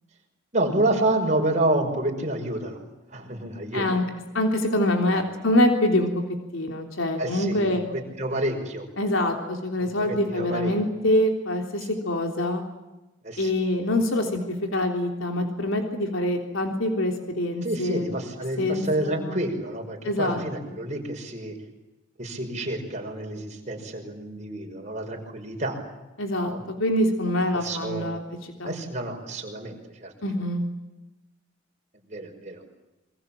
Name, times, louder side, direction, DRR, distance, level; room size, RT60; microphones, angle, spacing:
voice 1, 0.5-2.8 3.1-4.0 5.1-5.2 7.2-8.9 9.8-10.8 11.9-12.0 13.2-13.5 17.6-21.6 22.2-25.8 26.5-26.6 27.6-28.1 28.6-30.1 32.1-32.6, right 1 dB, 35° right, 2 dB, 5.7 m, -29 dB
voice 2, 3.7-4.0 4.3-6.1 6.5-7.8 9.0-12.6 13.4-18.0 18.6-19.4 20.0-20.4 20.7-20.8 26.2-28.8 30.2-30.6, left 1 dB, 75° left, 4 dB, 3.5 m, -25 dB
27.5 x 24.5 x 7.6 m, 1.0 s
head